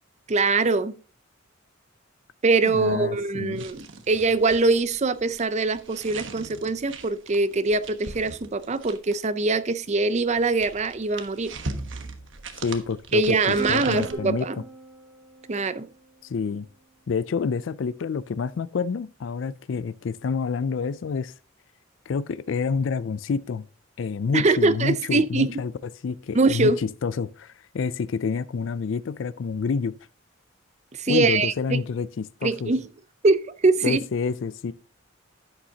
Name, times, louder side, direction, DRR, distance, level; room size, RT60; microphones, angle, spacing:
voice 1, 0.3-0.9 2.4-11.5 13.1-14.6 15.5-15.9 24.3-25.5 26.3-26.8 30.9-31.8 32.4-32.8 33.2-34.0, right 3 dB, 35° right, 0.5 m, -23 dB
voice 2, 2.6-3.6 12.6-14.5 16.2-16.7 17.1-21.3 22.1-23.6 24.0-25.7 26.0-29.9 31.1-32.7 33.8-34.7, left 5 dB, 65° left, 0.4 m, -28 dB
sound 1, 3.5-9.3 10.2-14.1, right 3 dB, 65° right, 1.2 m, -39 dB
Plucked string instrument, 13.6-16.3, right 3 dB, 5° left, 5.6 m, -39 dB
11.0 x 9.0 x 2.8 m
head